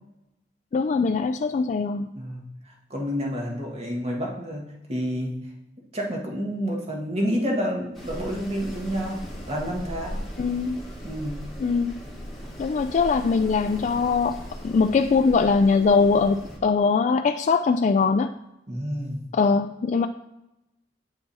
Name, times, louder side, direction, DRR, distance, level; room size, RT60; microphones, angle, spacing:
voice 1, 0.7-2.1 10.4-10.8 11.6-12.0 12.6-14.4 14.6-18.3 19.3-20.1, left 4 dB, 45° left, 7 dB, 0.3 m, -21 dB
voice 2, 2.9-5.4 5.9-10.2 11.0-11.4 18.7-19.2, equal, 35° right, -1 dB, 1.6 m, -29 dB
Wind, 7.9-16.6, equal, ahead, 1.6 m, -38 dB
8.7 x 4.5 x 4.2 m, 0.91 s
head